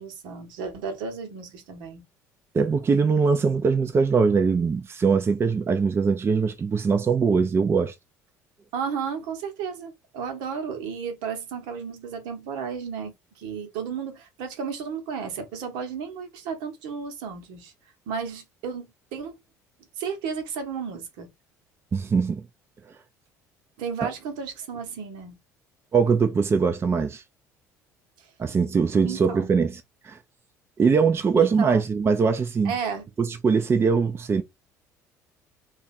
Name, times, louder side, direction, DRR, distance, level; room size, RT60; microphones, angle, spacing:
voice 1, 0.0-2.0 8.7-17.7 18.1-19.4 20.0-21.3 23.8-25.4 28.2-28.3 29.0-29.5 30.8-30.9 31.4-31.8 32.6-33.1, right 6 dB, 65° right, 1.0 m, -33 dB
voice 2, 2.5-7.9 21.9-22.4 25.9-27.2 28.4-30.2 30.8-32.7 33.2-34.4, right 5 dB, 25° right, 0.5 m, -22 dB
3.2 x 2.4 x 4.0 m
figure-of-eight pair, 60°, 9 cm